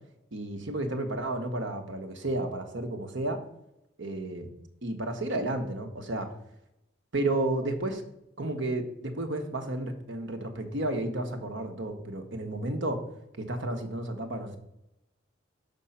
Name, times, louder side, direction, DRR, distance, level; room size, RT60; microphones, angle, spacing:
voice 1, 0.3-3.4 4.0-4.5 4.8-6.3 7.1-8.0 8.4-13.0 13.4-14.6, right 2 dB, 70° right, 5 dB, 1.1 m, -32 dB
6.2 x 5.4 x 5.7 m, 0.87 s
head